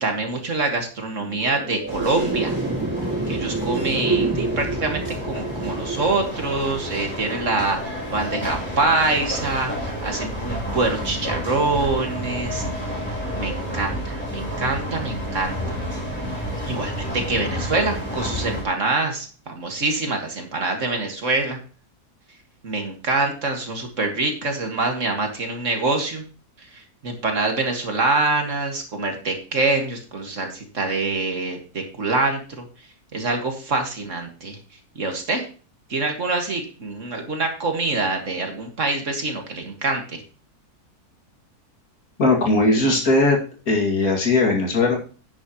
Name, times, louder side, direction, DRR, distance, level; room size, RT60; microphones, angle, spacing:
voice 1, 0.0-2.6 3.3-13.0 13.3-15.8 16.6-21.6 22.6-26.2 26.6-32.7 33.1-34.6 35.0-35.5 35.9-40.2, right 3 dB, 50° right, 4 dB, 2.1 m, -25 dB
sound 1, 1.1-11.6, right 3 dB, 15° right, 1.5 m, -30 dB
sound 2, 1.9-18.6, equal, 5° left, 4.1 m, -30 dB
voice 2, 42.2-43.4 43.7-45.0, left 2 dB, 65° left, 0 dB, 2.7 m, -18 dB
10.5 x 9.7 x 3.0 m, 0.37 s
omnidirectional pair, 1.7 m